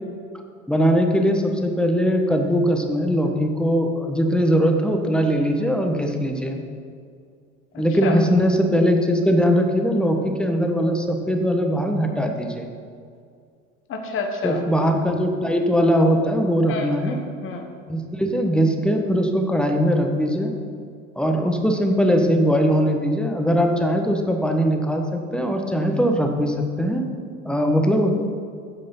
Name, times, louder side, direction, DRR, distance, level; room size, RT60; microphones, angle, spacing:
voice 1, 0.7-6.6 7.8-12.7 14.4-17.2 17.9-20.5 21.2-27.1 27.4-28.1, equal, ahead, 3 dB, 1.2 m, -20 dB
voice 2, 7.7-8.2 13.9-14.6 16.7-17.7, left 4 dB, 35° left, 3 dB, 1.2 m, -30 dB
9.3 x 7.5 x 5.5 m, 2.2 s
figure-of-eight pair, 75°, 38 cm